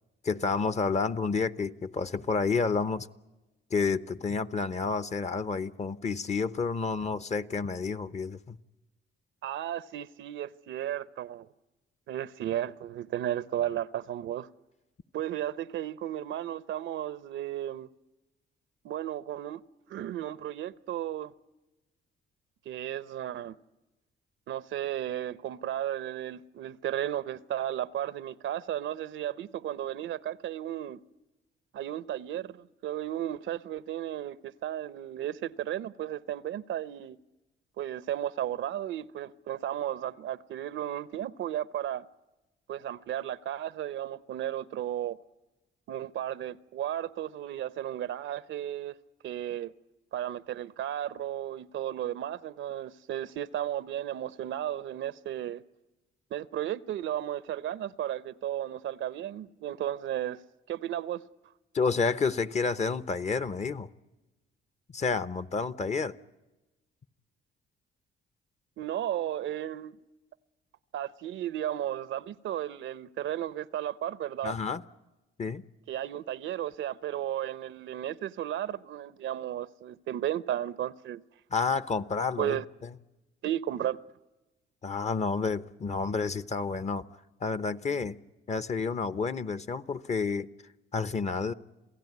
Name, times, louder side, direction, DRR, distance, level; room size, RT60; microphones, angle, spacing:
voice 1, 0.2-3.1 3.7-8.6 61.7-63.9 64.9-66.1 74.4-74.8 75.4-75.6 81.5-82.6 84.8-87.0 87.4-88.2 88.5-90.5 90.9-91.5, left 4 dB, 35° left, 0.9 m, -30 dB
voice 2, 9.4-11.5 12.1-14.5 15.1-17.9 18.8-19.6 19.9-21.3 22.7-23.6 24.5-31.0 31.7-37.2 37.8-42.0 42.7-45.2 45.9-49.0 49.2-49.7 50.1-55.6 56.3-60.4 60.7-61.2 68.8-70.0 70.9-74.5 75.9-81.2 82.4-82.6 83.4-84.0, right 11 dB, 75° right, 0.8 m, -34 dB
28.0 x 17.0 x 9.5 m
cardioid pair, 90°, 20 cm